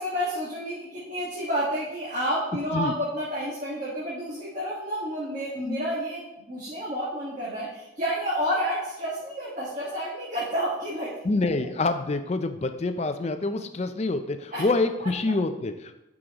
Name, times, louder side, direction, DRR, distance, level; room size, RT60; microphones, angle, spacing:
voice 1, 0.0-6.2 6.5-11.2 14.5-14.6, equal, 40° right, -7 dB, 1.6 m, -30 dB
voice 2, 2.6-3.0 5.6-5.8 11.2-16.0, left 3 dB, 35° left, 9 dB, 0.4 m, -27 dB
11.0 x 5.0 x 3.0 m, 0.95 s
head